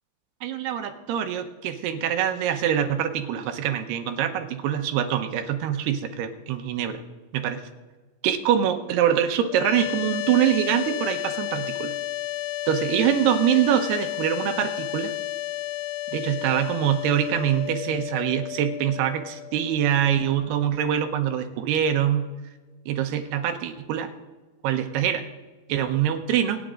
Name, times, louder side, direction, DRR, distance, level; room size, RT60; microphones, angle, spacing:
voice 1, 0.4-7.0 7.3-7.6 8.2-11.9 12.7-15.1 16.1-22.3 22.9-24.1 24.6-25.3 25.7-26.6, right 9 dB, 80° right, 7 dB, 2.9 m, -24 dB
sound 1, 9.5-20.6, left 15 dB, 80° left, 2.4 m, -32 dB
27.5 x 9.4 x 3.8 m, 1.3 s
omnidirectional pair, 5.0 m